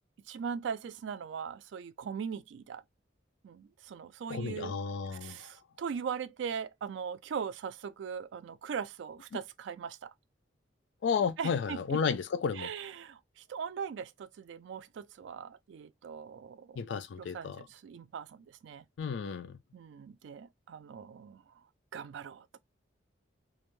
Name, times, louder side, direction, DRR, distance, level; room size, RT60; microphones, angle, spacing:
voice 1, 0.3-2.8 3.4-4.8 5.1-10.1 11.4-12.0 12.5-16.8 17.2-18.8 19.7-21.5 21.9-22.6, right 7 dB, 70° right, 0.3 m, -40 dB
voice 2, 4.3-5.5 11.0-12.7 16.8-17.6 19.0-19.6, left 6 dB, 70° left, 0.3 m, -32 dB
2.5 x 2.1 x 3.0 m
head